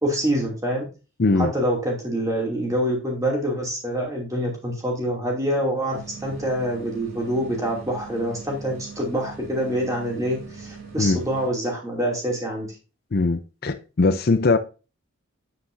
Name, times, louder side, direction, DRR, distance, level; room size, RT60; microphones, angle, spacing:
voice 1, 0.0-0.8 1.3-12.7, equal, 15° right, 2.6 m, -26 dB
voice 2, 1.2-1.5 11.0-11.2 13.1-14.6, left 3 dB, 50° left, 0.5 m, -20 dB
sound 1, 5.9-11.5, right 5 dB, 80° right, 3.1 m, -41 dB
8.6 x 7.6 x 2.6 m
head